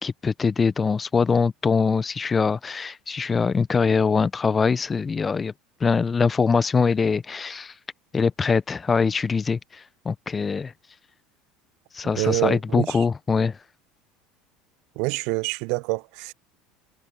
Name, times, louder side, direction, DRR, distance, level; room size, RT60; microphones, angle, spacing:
voice 1, 0.0-5.5 5.8-7.7 8.1-10.7 11.9-13.6, left 5 dB, 25° left, 1.2 m, -23 dB
voice 2, 12.1-13.0 15.0-16.3, right 31 dB, 60° right, 1.0 m, -26 dB
figure-of-eight pair, 70°, 0 cm